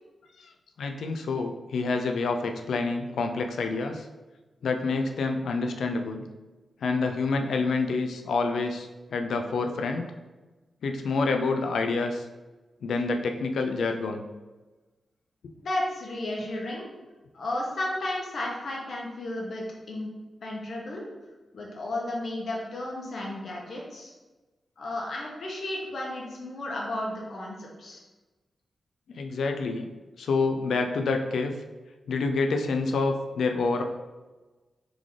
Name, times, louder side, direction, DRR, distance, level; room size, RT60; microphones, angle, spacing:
voice 1, 0.8-4.1 4.6-6.2 6.8-10.1 10.8-12.2 12.8-14.2 29.1-29.9 30.2-31.5 32.1-33.8, left 3 dB, 85° left, 5 dB, 0.4 m, -27 dB
voice 2, 15.6-16.9 17.3-20.1 20.4-21.0 21.5-24.1 24.8-28.0, left 1 dB, 70° left, -2 dB, 1.1 m, -33 dB
3.7 x 3.7 x 3.2 m, 1.2 s
cardioid pair, 60°, 0 cm